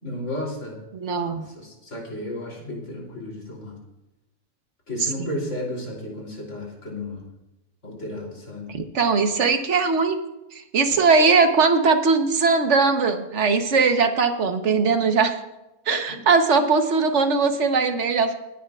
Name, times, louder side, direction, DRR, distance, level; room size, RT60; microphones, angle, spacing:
voice 1, 0.0-0.8 1.3-3.8 4.9-7.2 7.8-8.7 11.0-11.1 16.1-16.2, left 1 dB, 55° left, -1 dB, 3.6 m, -33 dB
voice 2, 0.9-1.5 5.0-5.3 8.7-10.2 10.5-15.4 15.9-18.3, right 4 dB, 55° right, 7 dB, 1.3 m, -20 dB
29.0 x 10.0 x 2.4 m, 0.99 s
omnidirectional pair, 1.5 m